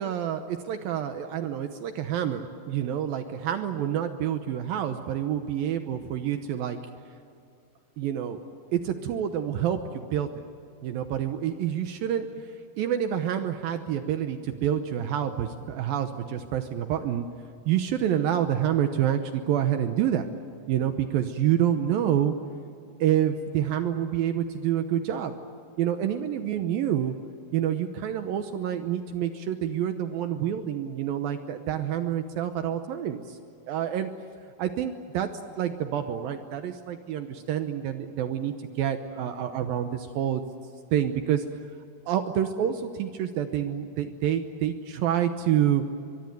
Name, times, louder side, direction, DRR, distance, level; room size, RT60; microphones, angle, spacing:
voice 1, 0.0-6.8 8.0-8.4 8.7-10.5 10.8-12.5 12.8-17.3 17.7-20.3 20.7-22.4 23.0-25.3 25.8-27.2 27.5-33.4 33.7-34.1 34.6-35.3 35.6-40.4 40.9-41.4 42.1-45.8, right 10 dB, 75° right, 8 dB, 2.5 m, -27 dB
23.0 x 23.0 x 9.2 m, 2.5 s
omnidirectional pair, 4.7 m